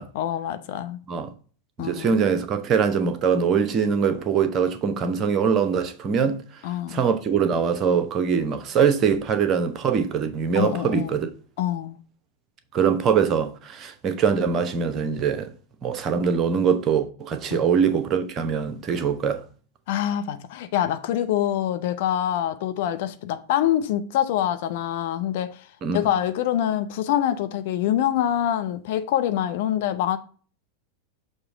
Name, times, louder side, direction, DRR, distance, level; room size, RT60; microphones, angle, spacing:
voice 1, 0.1-1.0 1.8-2.1 6.6-7.0 10.5-11.2 11.6-12.0 17.5-17.8 19.9-25.7 25.9-30.2, left 11 dB, 50° left, 0.6 m, -25 dB
voice 2, 1.8-6.4 6.9-11.3 12.7-15.5 15.8-19.4 25.8-26.0, right 6 dB, 30° right, 0.9 m, -23 dB
6.6 x 3.0 x 5.7 m
figure-of-eight pair, 90°, 0 cm